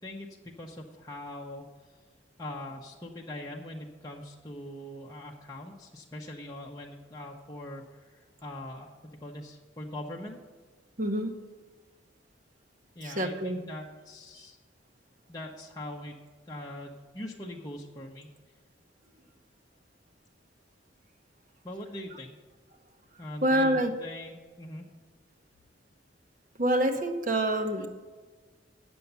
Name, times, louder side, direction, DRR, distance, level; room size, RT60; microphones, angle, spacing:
voice 1, 0.0-1.7 2.4-10.4 12.9-14.6 15.3-16.2 16.5-18.3 21.6-22.3 23.2-24.8, left 1 dB, 20° left, -3 dB, 0.8 m, -42 dB
voice 2, 11.0-11.3 13.0-13.6 23.4-23.9 26.6-27.9, right 1 dB, 45° right, 4 dB, 0.9 m, -26 dB
9.1 x 7.1 x 6.8 m, 1.4 s
head